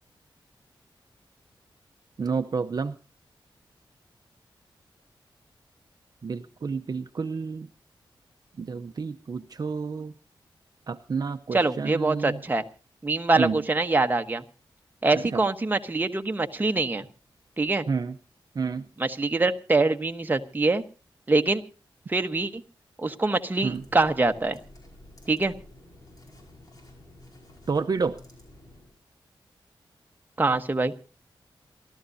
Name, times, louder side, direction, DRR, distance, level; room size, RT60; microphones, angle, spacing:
voice 1, 2.2-3.0 6.2-7.7 8.6-10.1 10.9-12.4 13.4-13.6 15.1-15.5 17.9-18.2 18.5-18.9 23.6-23.8 27.7-28.2, right 5 dB, 50° right, 7 dB, 0.7 m, -29 dB
voice 2, 11.5-12.6 13.0-14.4 15.0-17.0 17.6-17.9 19.0-20.8 21.3-21.6 22.1-22.6 23.0-24.6 25.3-25.5 30.4-30.9, right 3 dB, 20° right, 6 dB, 1.1 m, -24 dB
sound 1, 23.6-28.9, left 1 dB, 45° left, 4.9 m, -51 dB
28.0 x 12.5 x 2.7 m, 0.33 s
wide cardioid pair, 120°, 9 cm